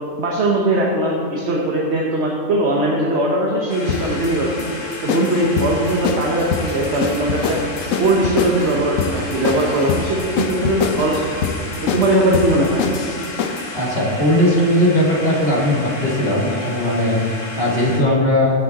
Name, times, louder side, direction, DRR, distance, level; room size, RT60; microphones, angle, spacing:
voice 1, 0.2-4.7 5.0-7.6 8.0-11.3 11.8-12.8, right 1 dB, 55° right, -2 dB, 1.3 m, -19 dB
sound 1, 3.7-18.0, left 2 dB, 65° left, 2.2 m, -33 dB
sound 2, 3.9-13.8, left 6 dB, 85° left, 1.1 m, -25 dB
sound 3, 5.3-12.5, equal, 75° right, 3.3 m, -39 dB
voice 2, 13.7-18.5, left 1 dB, 45° left, -5 dB, 2.4 m, -18 dB
15.5 x 6.2 x 4.2 m, 2.4 s
omnidirectional pair, 1.4 m